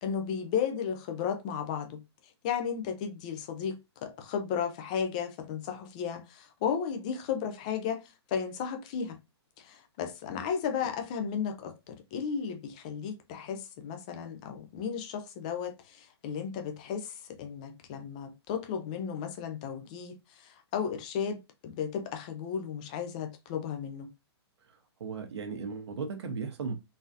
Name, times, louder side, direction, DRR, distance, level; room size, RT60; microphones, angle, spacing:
voice 1, 0.0-9.2 9.6-24.1, left 7 dB, 15° left, 0.3 m, -34 dB
voice 2, 24.6-26.7, right 5 dB, 75° right, 1.0 m, -37 dB
3.9 x 2.6 x 2.4 m
hypercardioid pair, 175°, 14 cm